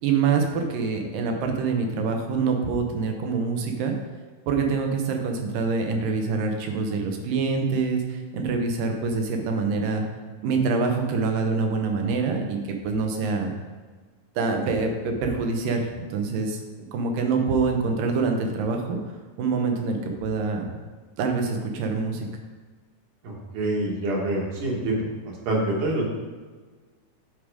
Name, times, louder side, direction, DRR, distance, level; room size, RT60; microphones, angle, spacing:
voice 1, 0.0-3.9 4.5-10.0 10.4-12.6 12.8-13.5 14.4-16.6 16.9-19.0 19.4-20.7 21.2-22.3, right 4 dB, 90° right, 3 dB, 2.6 m, -25 dB
voice 2, 23.2-25.0 25.5-26.1, right 1 dB, 70° right, -3 dB, 3.1 m, -26 dB
8.6 x 5.2 x 4.8 m, 1.4 s
omnidirectional pair, 3.8 m